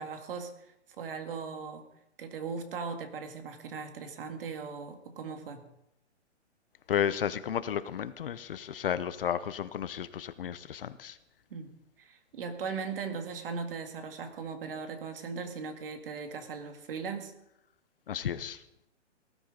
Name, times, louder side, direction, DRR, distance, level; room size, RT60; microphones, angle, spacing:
voice 1, 0.0-1.8 2.2-5.6 11.5-11.7 12.0-17.3, right 5 dB, 50° right, 7 dB, 2.1 m, -38 dB
voice 2, 6.9-11.2 18.1-18.6, left 9 dB, 50° left, 14 dB, 0.8 m, -33 dB
19.0 x 13.0 x 3.9 m, 0.82 s
hypercardioid pair, 155°, 36 cm